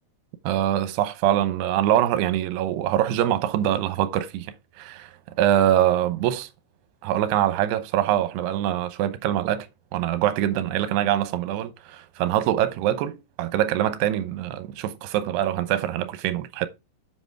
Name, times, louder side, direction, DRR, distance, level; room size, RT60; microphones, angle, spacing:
voice 1, 0.4-5.1 5.4-6.5 7.0-9.7 9.9-16.7, right 12 dB, 80° right, 2.9 m, -24 dB
7.8 x 7.8 x 3.5 m
omnidirectional pair, 4.8 m